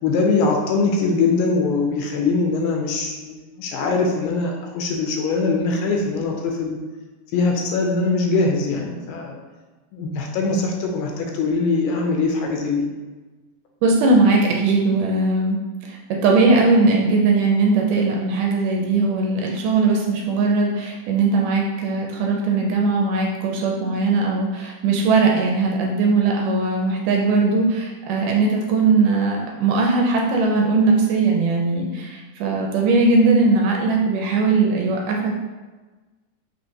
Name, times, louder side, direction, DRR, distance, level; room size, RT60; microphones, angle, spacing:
voice 1, 0.0-6.8 7.3-9.4 9.9-12.9, left 3 dB, 80° left, 1 dB, 2.3 m, -22 dB
voice 2, 13.8-15.6 15.9-35.4, right 3 dB, 80° right, 0 dB, 2.0 m, -19 dB
5.6 x 3.3 x 2.7 m, 1.2 s
omnidirectional pair, 3.9 m